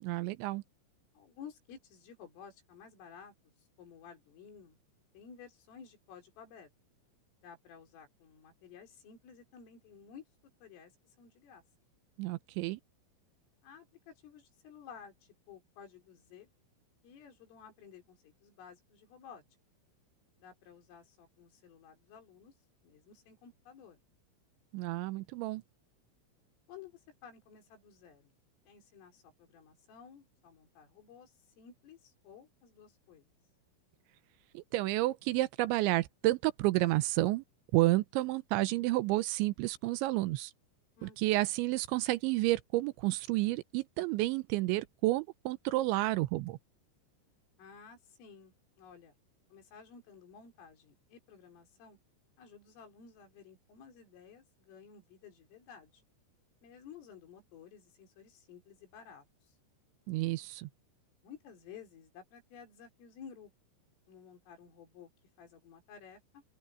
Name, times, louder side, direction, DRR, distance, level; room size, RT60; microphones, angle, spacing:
voice 1, 0.0-0.6 12.2-12.8 24.7-25.6 34.5-37.4 37.7-40.5 41.0-46.6 60.1-60.7, right 18 dB, 80° right, 2.9 m, -30 dB
voice 2, 1.2-3.3 3.8-4.8 5.1-6.7 7.4-10.2 10.6-11.6 13.6-16.5 17.0-19.4 20.4-22.5 22.8-24.0 26.7-28.3 28.7-33.3 41.0-41.3 47.6-49.1 49.5-52.0 52.4-56.0 56.6-59.5 61.2-63.5 64.1-65.1 65.4-66.4, left 7 dB, 80° left, 7.2 m, -54 dB
open air
omnidirectional pair, 5.7 m